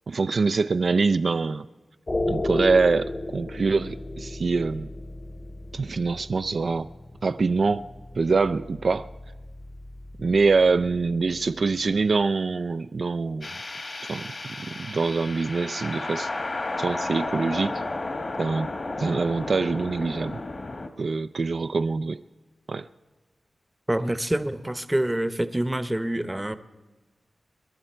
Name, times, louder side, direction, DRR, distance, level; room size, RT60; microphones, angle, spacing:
voice 1, 0.1-1.7 2.3-4.9 5.7-6.9 7.2-7.8 8.2-9.1 10.2-13.5 14.1-16.3 16.8-17.8 18.4-18.7 19.0-20.4 21.0-22.2 22.7-22.9, right 4 dB, 60° right, 10 dB, 0.4 m, -24 dB
sound 1, 2.1-12.3, left 2 dB, 30° left, 0.9 m, -35 dB
sound 2, 13.4-20.9, left 2 dB, 50° left, 1.6 m, -33 dB
voice 2, 23.9-26.6, right 1 dB, 15° right, 12 dB, 0.8 m, -26 dB
27.5 x 11.0 x 4.4 m, 1.2 s
wide cardioid pair, 75°, 0 cm